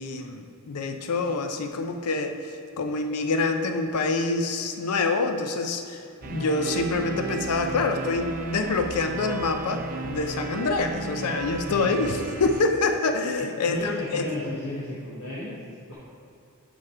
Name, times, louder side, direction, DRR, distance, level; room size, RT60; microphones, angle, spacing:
voice 1, 0.0-14.2, left 3 dB, 90° left, 6 dB, 0.5 m, -26 dB
sound 1, 6.2-12.7, right 3 dB, 40° right, 0.6 m, -34 dB
voice 2, 11.7-12.3 13.4-15.9, left 1 dB, 70° left, -8 dB, 1.5 m, -34 dB
7.5 x 5.2 x 4.5 m, 2.5 s
head